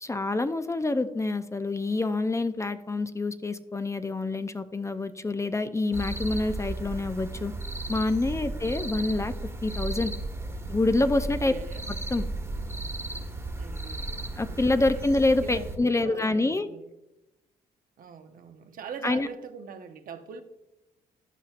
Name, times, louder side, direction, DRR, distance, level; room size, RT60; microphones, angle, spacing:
voice 1, 0.0-7.5 7.9-9.3 9.6-10.1 10.7-11.5 11.9-12.2 14.4-16.7 19.0-19.3, left 2 dB, 20° left, 10 dB, 0.5 m, -27 dB
sound 1, 5.9-15.8, right 2 dB, 15° right, 1.4 m, -35 dB
voice 2, 11.4-11.8 12.6-12.7 13.0-15.1 15.4-16.9 18.0-20.4, right 6 dB, 60° right, 7 dB, 0.9 m, -44 dB
11.5 x 5.6 x 2.5 m, 0.95 s
supercardioid pair, 60°, 16 cm